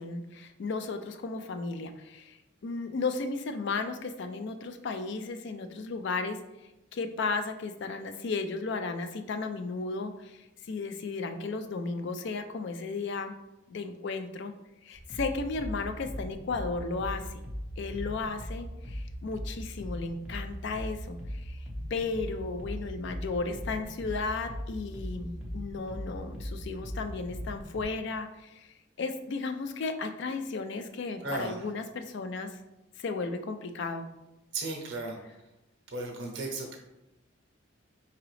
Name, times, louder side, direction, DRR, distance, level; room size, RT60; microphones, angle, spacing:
voice 1, 0.0-6.4 6.9-13.4 13.7-14.5 14.8-17.4 17.8-21.6 21.9-32.6 33.0-34.1, left 3 dB, 60° left, 8 dB, 0.4 m, -34 dB
sound 1, 14.9-27.8, equal, 5° right, 0.7 m, -39 dB
voice 2, 31.2-31.6 34.5-35.1 35.9-36.7, right 2 dB, 55° right, 0 dB, 0.8 m, -35 dB
4.9 x 2.9 x 3.1 m, 0.96 s
head